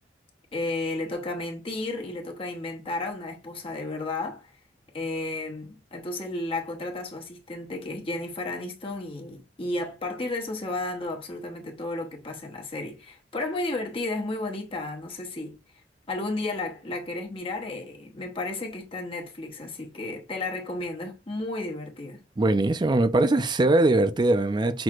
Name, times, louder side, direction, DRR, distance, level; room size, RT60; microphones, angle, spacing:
voice 1, 0.5-4.6 4.9-15.6 16.1-22.2, left 2 dB, 30° left, 0.9 m, -33 dB
voice 2, 22.4-24.8, right 2 dB, 25° right, 0.4 m, -21 dB
6.0 x 3.1 x 2.4 m
head